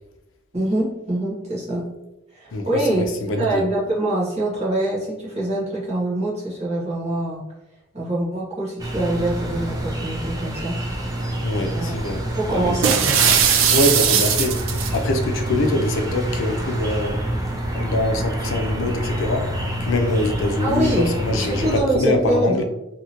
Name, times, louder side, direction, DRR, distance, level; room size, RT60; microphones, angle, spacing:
voice 1, 0.5-1.8 2.3-3.0 3.4-7.4 7.9-10.7 11.7-11.9 12.4-13.2 20.6-22.6, right 1 dB, 35° right, -6 dB, 1.2 m, -24 dB
voice 2, 2.5-3.7 11.4-12.2 12.5-12.9 13.7-14.6 14.9-17.3 17.7-19.5 19.8-22.6, left 2 dB, 80° left, 5 dB, 0.5 m, -24 dB
sound 1, 8.8-21.8, right 1 dB, 20° right, 0.4 m, -27 dB
sound 2, 12.8-15.0, right 7 dB, 85° right, 0.4 m, -18 dB
2.8 x 2.5 x 2.8 m, 0.95 s
head